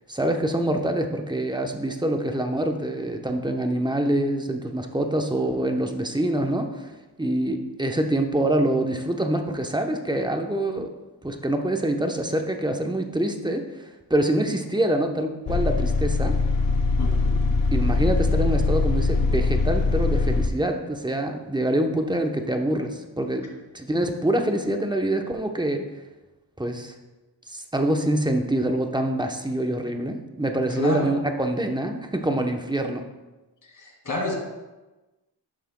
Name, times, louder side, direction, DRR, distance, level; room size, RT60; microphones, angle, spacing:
voice 1, 0.1-6.9 7.2-10.9 11.2-16.4 17.7-25.9 26.6-26.9 27.5-33.0, right 1 dB, 10° right, 4 dB, 0.8 m, -25 dB
sound 1, 15.5-20.5, left 3 dB, 70° left, 0.9 m, -22 dB
voice 2, 17.0-17.4 30.7-31.1 33.8-34.3, left 2 dB, 40° left, 0 dB, 2.1 m, -29 dB
11.5 x 6.6 x 2.2 m, 1.1 s
cardioid pair, 65°, 45 cm